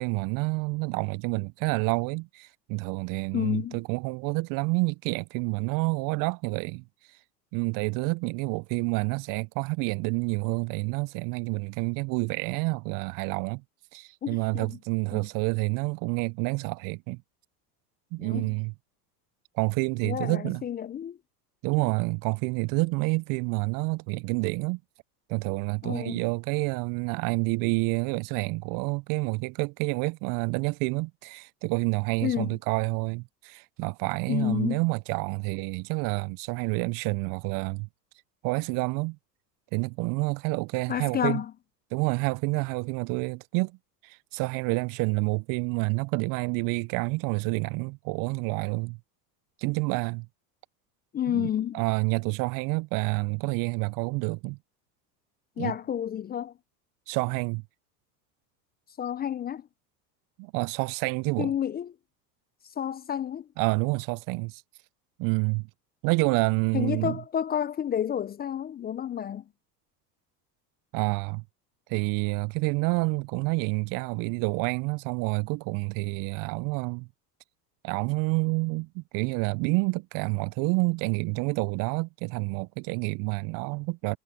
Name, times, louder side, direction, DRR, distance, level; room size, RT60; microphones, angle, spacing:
voice 1, 0.0-6.8 7.5-13.6 13.9-17.2 18.1-18.7 19.5-20.6 21.6-24.8 25.3-37.9 38.4-39.2 39.7-41.4 41.9-43.8 44.0-49.0 49.6-50.3 51.3-51.5 51.7-54.6 55.6-55.7 57.1-57.6 60.4-61.5 63.6-64.6 65.2-65.7 66.0-67.2 70.9-71.4 71.9-77.1 77.8-84.2, right 28 dB, 45° right, 0.4 m, -28 dB
voice 2, 3.3-3.8 14.2-14.8 15.1-15.3 18.2-18.5 20.0-21.2 25.8-26.3 32.2-32.6 34.3-34.8 40.9-41.5 51.1-51.8 55.6-56.5 59.0-59.7 61.4-61.9 62.8-63.5 66.7-69.4, left 10 dB, 20° left, 0.4 m, -30 dB
hypercardioid pair, 90°, 47 cm